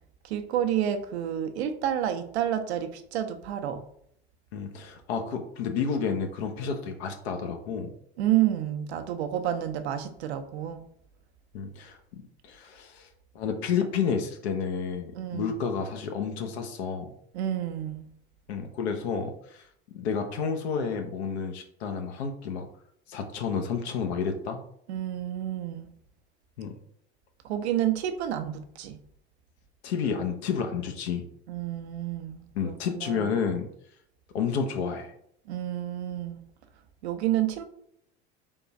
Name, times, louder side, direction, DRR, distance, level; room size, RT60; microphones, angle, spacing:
voice 1, 0.2-3.8 8.2-10.8 15.1-15.5 17.3-18.1 24.9-25.9 27.4-29.0 31.5-33.3 35.5-36.4 37.0-37.6, right 11 dB, 80° right, 7 dB, 0.7 m, -29 dB
voice 2, 4.5-7.9 11.5-13.1 13.3-17.1 18.5-19.7 19.9-22.7 23.1-24.6 26.6-26.7 29.8-31.2 32.5-33.7 34.3-35.1, left 6 dB, 80° left, 5 dB, 0.8 m, -30 dB
3.6 x 2.4 x 4.0 m, 0.69 s
hypercardioid pair, 95°, 32 cm